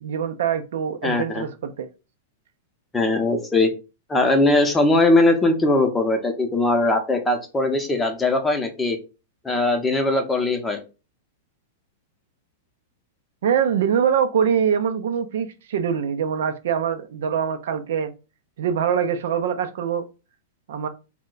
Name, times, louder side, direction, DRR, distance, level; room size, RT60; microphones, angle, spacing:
voice 1, 0.0-1.9 13.4-18.1 18.6-20.1 20.7-20.9, right 8 dB, 70° right, 0.4 m, -23 dB
voice 2, 1.0-1.4 2.9-3.7 4.1-9.0 9.4-10.8, left 2 dB, 10° left, 0.6 m, -20 dB
2.2 x 2.1 x 3.8 m
hypercardioid pair, 130°, 0 cm